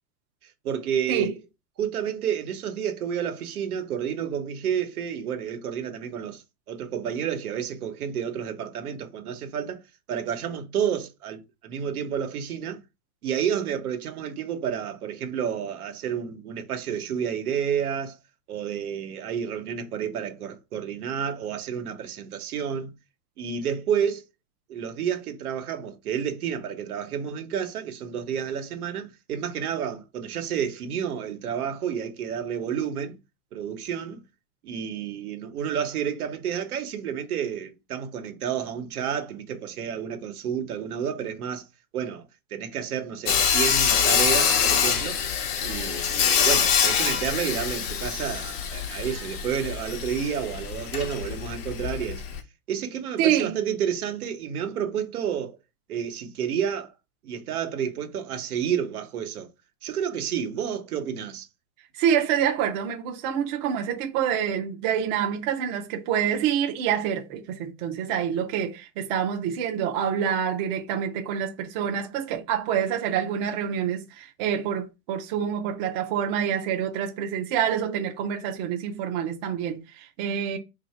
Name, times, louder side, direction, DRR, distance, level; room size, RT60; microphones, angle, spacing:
voice 1, 0.6-1.3 1.8-6.4 6.7-9.8 10.1-12.8 13.2-18.2 18.5-22.9 23.4-24.2 24.7-33.2 33.5-34.2 34.6-41.6 41.9-42.3 42.5-45.3 45.6-52.2 52.7-55.6 55.9-56.9 57.2-59.5 59.8-61.4, right 8 dB, 85° right, 1.1 m, -30 dB
Sawing, 43.3-52.4, left 7 dB, 45° left, 0.7 m, -25 dB
voice 2, 53.2-53.6 62.0-80.6, right 8 dB, 35° right, 0.5 m, -27 dB
2.8 x 2.7 x 4.2 m
supercardioid pair, 145°, 43 cm